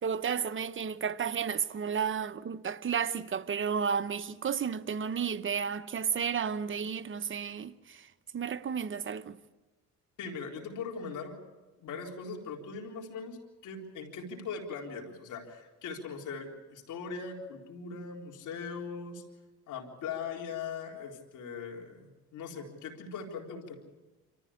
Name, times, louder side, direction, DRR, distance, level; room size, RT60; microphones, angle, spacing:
voice 1, 0.0-8.1 8.3-9.4, right 7 dB, 40° right, 1.0 m, -32 dB
voice 2, 10.2-11.4 11.8-19.2 19.7-23.7, left 5 dB, 80° left, 3.9 m, -40 dB
27.0 x 14.0 x 8.6 m
cardioid pair, 90°, 30 cm